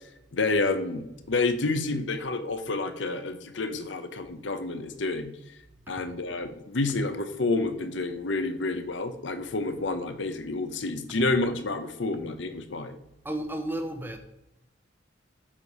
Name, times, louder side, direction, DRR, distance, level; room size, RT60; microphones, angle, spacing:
voice 1, 0.3-1.0 1.3-5.3 5.9-13.0, left 3 dB, 70° left, 0.8 m, -29 dB
voice 2, 13.2-14.2, right 1 dB, 10° right, 0.8 m, -33 dB
7.5 x 4.9 x 5.4 m
head